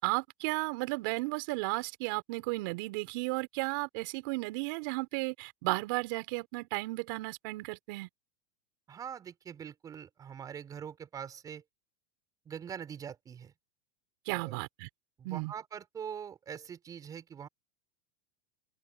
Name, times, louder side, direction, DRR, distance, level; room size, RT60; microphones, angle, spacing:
voice 1, 0.0-8.1 14.2-14.9 15.2-15.5, right 26 dB, 65° right, 4.6 m, -34 dB
voice 2, 8.9-11.6 12.4-13.5 14.3-14.5 15.2-17.5, right 8 dB, 30° right, 4.8 m, -43 dB
hypercardioid pair, 95°, 12 cm